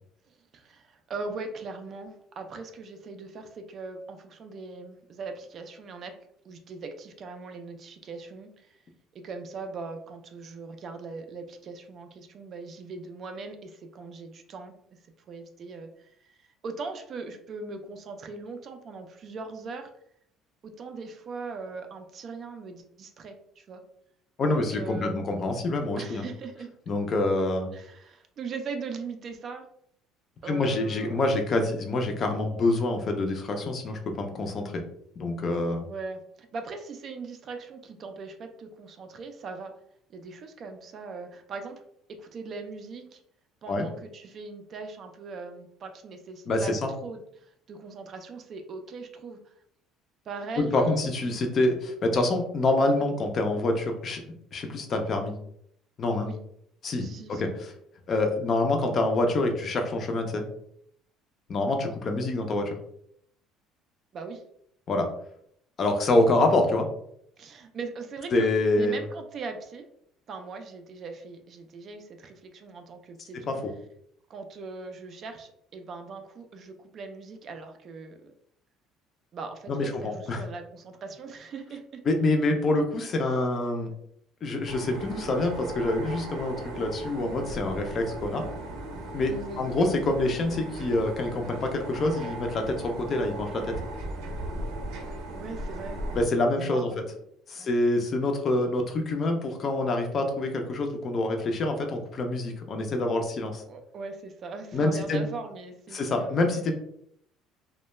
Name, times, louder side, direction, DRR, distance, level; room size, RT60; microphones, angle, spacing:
voice 1, 0.5-6.1 6.4-8.8 9.1-14.7 15.3-16.4 16.6-19.9 20.6-23.8 24.4-25.2 26.0-26.7 27.7-29.7 30.4-31.2 35.9-39.7 40.1-41.8 42.2-43.2 43.6-49.5 50.3-51.3 56.2-56.4 57.0-57.4 64.1-64.4 67.4-68.5 68.7-69.8 70.3-73.6 74.3-78.2 79.3-82.0 89.3-89.6 95.3-96.0 96.6-97.1 97.6-97.7 103.7-106.4, right 4 dB, 35° right, 6 dB, 0.3 m, -40 dB
voice 2, 24.4-26.2 26.9-27.7 30.5-34.8 35.2-35.9 43.7-43.9 46.5-46.9 50.6-54.2 54.5-55.3 56.0-56.3 56.8-57.7 58.1-60.4 61.5-62.8 64.9-65.1 65.8-66.9 68.3-69.0 73.5-73.7 79.7-80.4 82.1-83.9 84.4-88.4 89.1-93.8 96.1-96.9 97.5-103.6 104.7-105.2 105.9-106.7, left 2 dB, 30° left, 4 dB, 0.4 m, -26 dB
sound 1, 84.6-96.2, right 2 dB, 80° right, 0.6 m, -37 dB
2.2 x 2.1 x 3.0 m, 0.70 s
cardioid pair, 155°, 0 cm